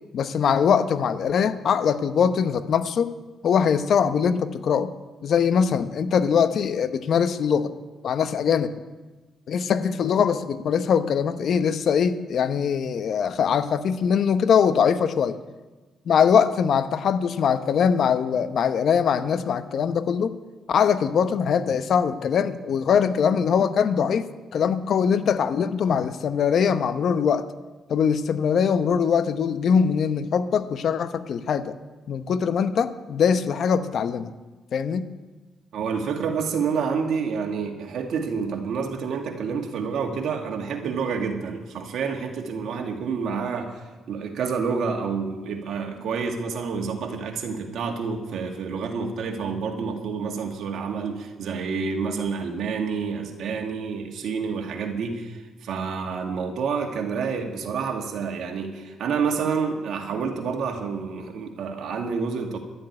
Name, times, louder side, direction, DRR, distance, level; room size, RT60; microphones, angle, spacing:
voice 1, 0.1-3.1 3.4-4.9 5.2-7.7 8.0-8.7 9.5-15.4 16.1-20.3 20.7-27.4 27.9-31.7 32.1-34.3 34.7-35.1, left 7 dB, 60° left, 12 dB, 0.8 m, -22 dB
voice 2, 35.7-62.6, right 5 dB, 70° right, 3 dB, 2.1 m, -28 dB
12.5 x 7.8 x 9.8 m, 1.2 s
cardioid pair, 90°, 0 cm